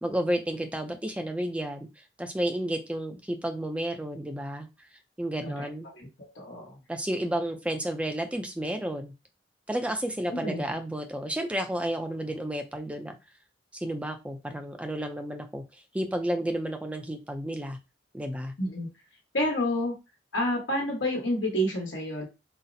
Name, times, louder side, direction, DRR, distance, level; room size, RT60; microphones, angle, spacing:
voice 1, 0.0-1.9 2.2-4.7 5.2-5.9 6.9-9.1 9.7-13.2 13.7-15.6 15.9-17.8 18.1-18.5, right 1 dB, 5° right, 5 dB, 0.4 m, -31 dB
voice 2, 6.3-6.8 10.3-10.6 18.6-18.9 19.3-19.9 20.3-22.3, equal, 90° left, -1 dB, 1.1 m, -29 dB
4.0 x 2.0 x 2.6 m, 0.26 s
head